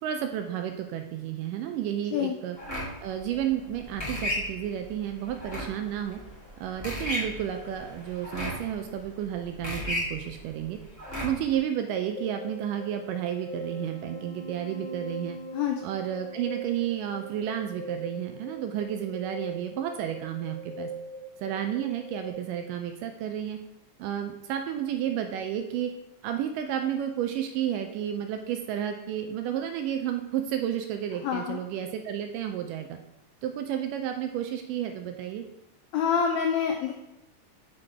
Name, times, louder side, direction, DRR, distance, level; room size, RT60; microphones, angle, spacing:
voice 1, 0.0-2.6 3.0-6.2 6.6-10.8 11.2-15.4 15.8-20.9 21.4-23.6 24.0-25.9 26.2-33.0 33.4-35.5, right 10 dB, 80° right, 5 dB, 2.1 m, -31 dB
sound 1, 2.6-11.5, left 1 dB, 5° right, 1.9 m, -35 dB
sound 2, 12.2-22.3, right 2 dB, 20° left, 1.8 m, -40 dB
voice 2, 31.2-31.6 35.9-36.9, left 7 dB, 85° left, 2 dB, 1.6 m, -26 dB
5.9 x 5.0 x 4.7 m, 0.92 s
omnidirectional pair, 3.8 m